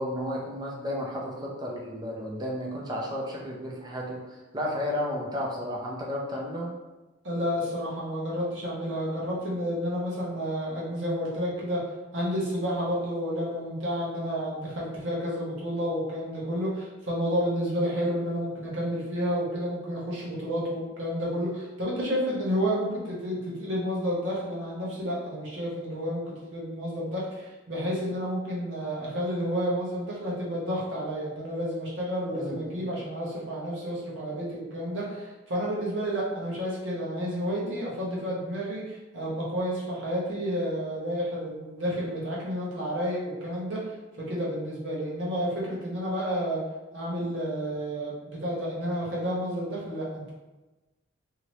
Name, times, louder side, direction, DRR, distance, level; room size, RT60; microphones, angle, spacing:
voice 1, 0.0-6.7 32.3-32.8, left 1 dB, 20° right, -3 dB, 0.5 m, -33 dB
voice 2, 7.2-11.8 12.1-43.8 44.2-46.6 46.9-50.3, equal, 70° right, -5 dB, 1.0 m, -30 dB
2.8 x 2.7 x 3.1 m, 1.1 s
head